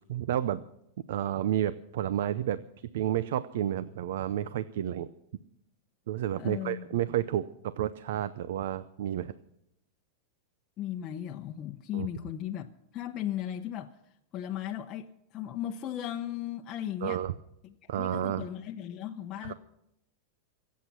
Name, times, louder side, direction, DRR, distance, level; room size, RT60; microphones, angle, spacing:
voice 1, 0.1-0.6 1.1-2.6 2.9-5.1 6.1-9.3 11.9-12.1 17.0-17.3 17.9-18.5 19.4-19.5, right 11 dB, 75° right, 15 dB, 0.6 m, -31 dB
voice 2, 6.4-7.0 10.8-13.9 14.3-17.2 17.6-19.5, left 11 dB, 30° left, 2 dB, 0.8 m, -37 dB
23.0 x 8.3 x 6.1 m, 0.81 s
supercardioid pair, 135°, 0 cm